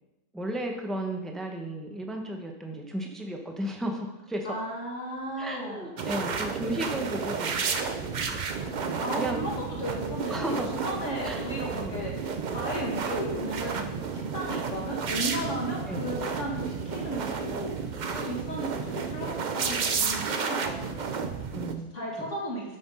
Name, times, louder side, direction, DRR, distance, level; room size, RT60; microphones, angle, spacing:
voice 1, 0.3-4.5 5.4-7.6 8.3-8.5 8.8-9.4 10.3-10.7 11.2-12.0 15.9-16.1 21.5-21.9, right 1 dB, ahead, 2 dB, 0.7 m, -34 dB
voice 2, 4.4-5.9 9.0-21.4 21.9-22.8, equal, 50° left, -3 dB, 2.4 m, -35 dB
sound 1, 6.0-21.7, right 5 dB, 85° right, 0.4 m, -32 dB
7.9 x 6.0 x 5.5 m, 0.97 s
omnidirectional pair, 1.7 m